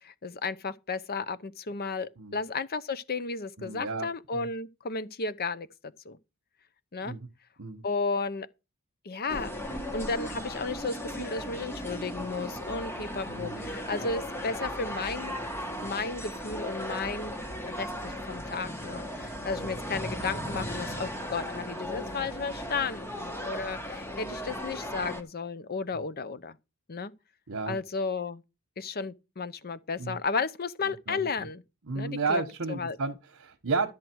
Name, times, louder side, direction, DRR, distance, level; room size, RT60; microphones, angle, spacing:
voice 1, 0.0-6.2 6.9-7.2 7.8-8.5 9.0-15.3 15.8-17.3 17.7-26.6 26.9-27.1 27.7-28.4 28.8-31.6 31.9-32.4 32.7-33.0, left 4 dB, 45° left, 0.8 m, -34 dB
voice 2, 3.6-4.1 4.3-4.5 7.0-7.3 7.6-7.8 13.3-13.7 14.0-14.1 19.6-19.7 25.9-26.0 27.5-27.8 30.0-30.2 31.1-31.5 31.9-33.9, right 3 dB, 65° right, 1.3 m, -33 dB
sound 1, 9.3-25.2, equal, 10° left, 1.4 m, -36 dB
12.5 x 7.6 x 4.6 m
head